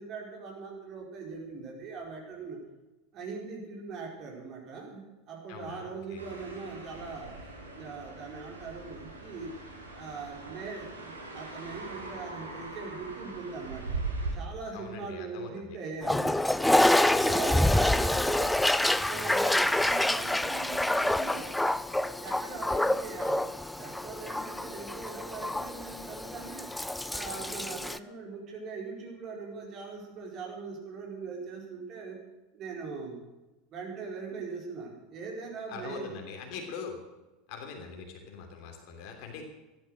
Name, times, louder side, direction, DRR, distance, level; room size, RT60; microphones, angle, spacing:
voice 1, 0.0-2.6 3.1-7.3 7.7-9.5 9.9-14.0 14.3-16.8 17.2-18.6 19.0-21.5 22.2-26.7 27.1-32.2 32.5-33.2 33.7-36.1 36.5-36.6, right 4 dB, 40° right, -1 dB, 4.4 m, -41 dB
voice 2, 5.5-6.3 14.7-15.8 17.0-17.7 35.7-37.0 37.5-39.4, left 5 dB, 50° left, 3 dB, 3.1 m, -43 dB
sound 1, 6.2-14.3, right 3 dB, 85° right, 2.8 m, -40 dB
Toilet flush, 16.0-28.0, left 1 dB, 5° left, 0.5 m, -27 dB
14.5 x 11.5 x 6.5 m, 1.1 s
figure-of-eight pair, 80°, 0 cm